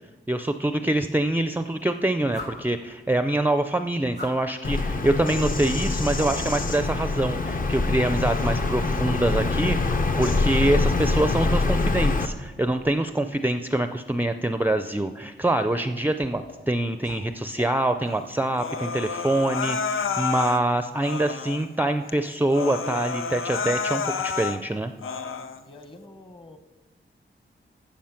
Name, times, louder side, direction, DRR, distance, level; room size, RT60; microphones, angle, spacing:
voice 1, 0.3-24.9, right 1 dB, 10° right, 8 dB, 0.4 m, -25 dB
sound 1, 1.3-18.5, left 2 dB, 65° left, 4.6 m, -48 dB
Bird vocalization bird call bird song, 4.6-12.3, left 3 dB, 40° left, 0.8 m, -24 dB
Human voice, 18.6-20.6 21.0-21.7 22.1-22.2 22.5-24.6 25.0-25.6, left 5 dB, 90° left, 0.7 m, -29 dB
voice 2, 25.6-26.6, left 2 dB, 25° left, 8 dB, 1.1 m, -46 dB
15.0 x 7.1 x 5.8 m, 1.2 s
wide cardioid pair, 115°, 20 cm